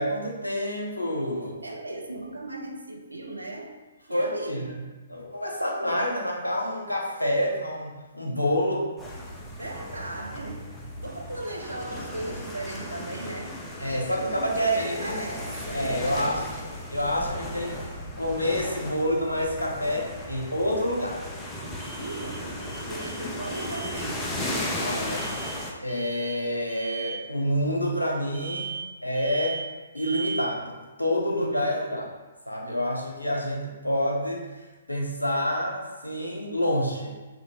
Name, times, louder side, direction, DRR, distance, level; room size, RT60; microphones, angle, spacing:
voice 1, 0.0-1.6 4.1-4.7 5.1-8.9 13.8-15.2 15.7-16.4 16.9-17.8 18.2-21.2 24.8-25.4 25.8-29.6 29.9-32.1 32.5-37.1, equal, 85° left, -1 dB, 0.7 m, -28 dB
voice 2, 1.6-4.9 9.6-10.7 11.0-16.8 22.0-24.5 31.2-31.8, right 2 dB, 80° right, 2 dB, 0.4 m, -37 dB
sound 1, 9.0-25.7, left 1 dB, 10° left, 0.4 m, -36 dB
sound 2, 21.8-22.4 22.6-23.2 23.4-23.9 25.1-25.6 25.9-26.4 26.7-27.2 28.3-28.9 29.1-29.7 30.0-30.5, right 5 dB, 30° right, 1.0 m, -37 dB
2.9 x 2.8 x 2.8 m, 1.2 s
figure-of-eight pair, 125°, 0 cm